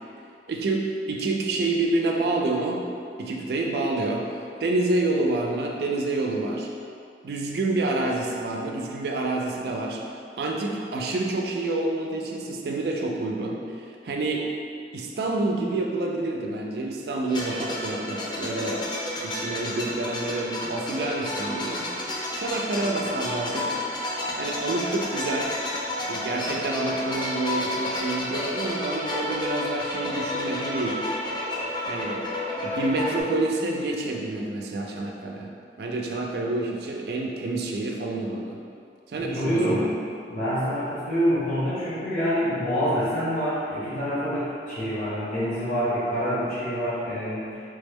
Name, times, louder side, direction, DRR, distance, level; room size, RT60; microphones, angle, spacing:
voice 1, 0.5-2.9 3.2-4.2 4.6-6.7 7.2-10.0 10.3-14.5 14.9-18.9 19.2-21.9 22.4-23.8 24.4-25.5 26.1-31.0 31.9-32.2 32.6-35.5 35.8-38.6 39.1-39.8, right 2 dB, 60° right, 0 dB, 0.3 m, -28 dB
sound 1, 17.3-33.2, left 1 dB, 25° left, 0.3 m, -31 dB
voice 2, 39.2-39.9 40.3-47.6, equal, 50° left, -13 dB, 0.9 m, -26 dB
3.3 x 2.1 x 3.4 m, 2.4 s
head